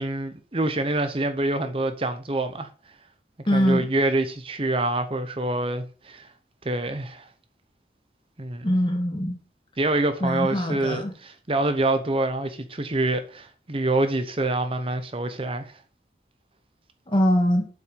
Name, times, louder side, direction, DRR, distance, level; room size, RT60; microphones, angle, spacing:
voice 1, 0.0-2.7 3.5-6.3 6.6-7.3 8.4-8.7 9.8-15.7, right 2 dB, 30° right, 0.8 m, -26 dB
voice 2, 3.5-3.9 8.6-9.4 10.2-11.1 17.1-17.7, equal, 30° left, 2.0 m, -22 dB
7.9 x 5.9 x 6.4 m
head